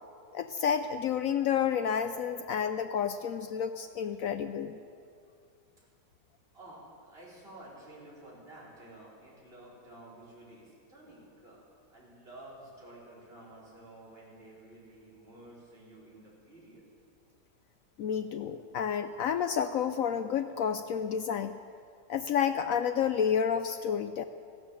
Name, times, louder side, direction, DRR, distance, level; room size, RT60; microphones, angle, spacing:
voice 1, 0.3-4.8 18.0-21.5 22.1-24.2, left 8 dB, 70° left, 10 dB, 0.8 m, -30 dB
voice 2, 6.5-11.6 11.9-16.8, right 1 dB, 30° right, -6 dB, 4.8 m, -51 dB
15.0 x 12.0 x 7.6 m, 2.4 s
omnidirectional pair, 1.9 m